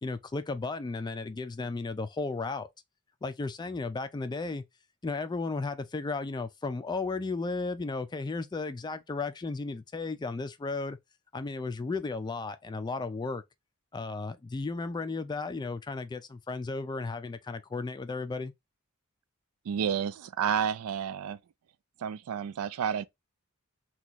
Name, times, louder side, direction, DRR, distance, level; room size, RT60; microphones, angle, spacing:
voice 1, 0.0-2.7 3.2-4.6 5.0-11.0 11.3-13.4 13.9-18.5, left 3 dB, 20° left, 0.3 m, -34 dB
voice 2, 19.7-21.4 22.0-23.0, right 8 dB, 80° right, 0.3 m, -30 dB
2.9 x 2.3 x 4.0 m
head